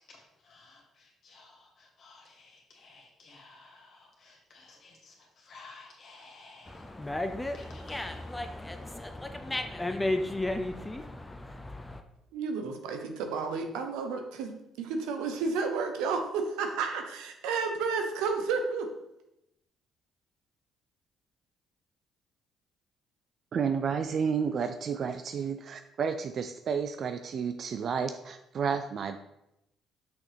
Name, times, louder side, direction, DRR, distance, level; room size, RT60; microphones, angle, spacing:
voice 1, 0.0-9.3, left 3 dB, 60° left, 0 dB, 2.1 m, -55 dB
Dog, 6.7-12.0, left 1 dB, 15° left, 0.6 m, -34 dB
voice 2, 12.3-18.9, right 4 dB, 85° right, 5 dB, 0.8 m, -31 dB
voice 3, 23.5-29.2, right 6 dB, 55° right, 8 dB, 0.4 m, -31 dB
6.2 x 6.0 x 3.4 m, 0.85 s
supercardioid pair, 70°, 0 cm